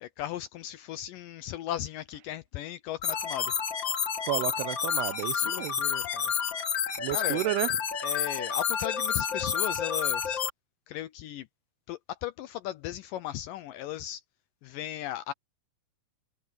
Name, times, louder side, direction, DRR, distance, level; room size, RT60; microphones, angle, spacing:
voice 1, 0.0-3.5 5.4-6.3 7.1-7.4 8.0-10.4 10.9-11.5 11.9-14.2 14.6-15.3, left 13 dB, 80° left, 2.0 m, -37 dB
sound 1, 3.0-10.5, left 7 dB, 45° left, 1.6 m, -30 dB
voice 2, 4.2-5.8 7.0-7.8, right 18 dB, 90° right, 2.7 m, -31 dB
omnidirectional pair, 4.5 m